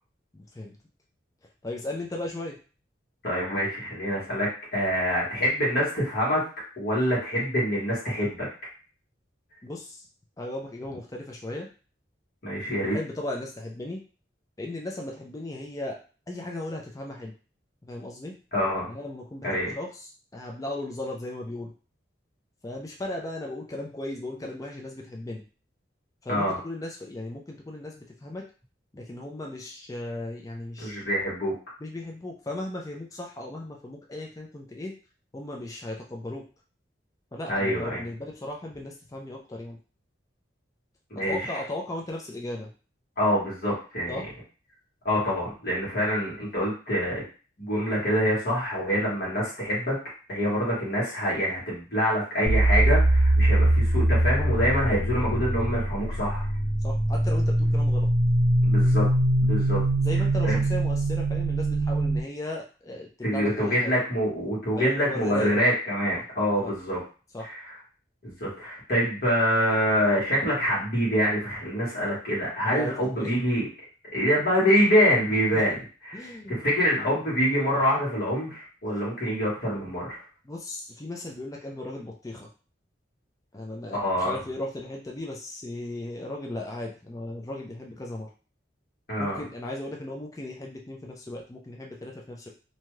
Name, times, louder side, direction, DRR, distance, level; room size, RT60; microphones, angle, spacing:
voice 1, 0.3-0.8 1.6-2.6 9.6-10.1 10.4-11.7 12.8-14.0 14.6-16.0 16.3-17.3 17.8-18.3 18.9-21.7 22.6-25.4 26.2-28.4 28.9-31.0 31.8-34.9 35.3-36.4 37.3-39.8 41.2-42.7 44.1-44.2 56.8-58.1 60.0-63.9 64.8-65.5 66.1-66.2 66.6-66.7 67.3-67.5 72.7-73.3 75.5-75.8 76.1-76.7 80.4-82.5 83.5-88.3 89.2-92.5, left 1 dB, 20° left, 0 dB, 0.4 m, -36 dB
voice 2, 3.2-6.4 6.8-8.5 12.4-13.0 18.5-18.9 19.4-19.7 26.3-26.5 30.8-31.5 37.5-38.0 41.1-41.6 43.2-44.1 45.0-47.2 47.6-49.9 50.3-56.5 58.6-59.1 59.4-59.8 60.4-60.6 63.2-67.0 67.4-67.6 68.2-73.7 74.1-75.7 76.0-80.2 83.9-84.3 89.1-89.4, equal, 55° left, -7 dB, 1.4 m, -25 dB
sound 1, 52.5-62.2, right 1 dB, 50° right, 1.1 m, -22 dB
2.7 x 2.3 x 3.1 m, 0.36 s
head